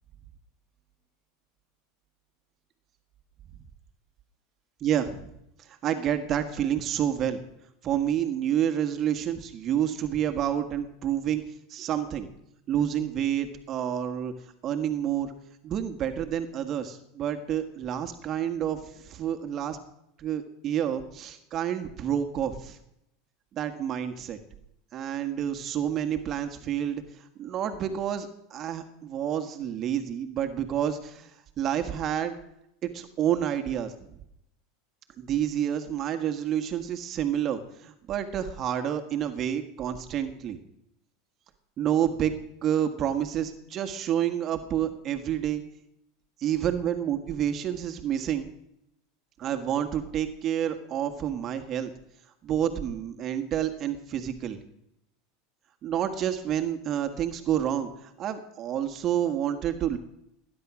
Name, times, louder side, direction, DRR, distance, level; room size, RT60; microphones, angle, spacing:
voice 1, 4.8-5.3 5.7-7.4 7.8-11.4 11.7-12.3 12.7-14.3 14.6-15.3 15.6-19.8 20.2-22.8 23.5-24.4 24.9-27.0 27.4-31.3 31.6-32.3 32.8-34.1 35.2-40.6 41.8-42.3 42.6-45.6 46.4-48.5 49.4-51.9 52.4-54.6 55.8-60.0, right 10 dB, 40° right, 7 dB, 1.7 m, -29 dB
20.0 x 10.5 x 6.2 m, 0.80 s
hypercardioid pair, 95°, 0 cm